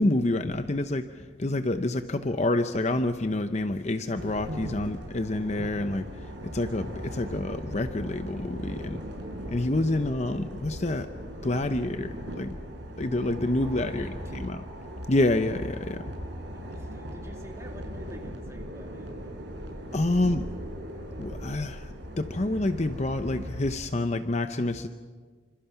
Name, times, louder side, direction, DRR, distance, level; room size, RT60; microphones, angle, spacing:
voice 1, 0.0-9.0 9.5-11.1 11.4-12.6 13.0-14.1 14.4-14.6 15.1-16.0 19.9-20.4 21.2-24.9, left 2 dB, 35° left, 9 dB, 0.8 m, -28 dB
sound 1, 4.1-23.8, equal, 65° right, 4.8 m, -39 dB
voice 2, 13.6-14.6 16.4-19.5, equal, 15° right, 2 dB, 2.7 m, -47 dB
27.5 x 26.0 x 5.9 m, 1.5 s
head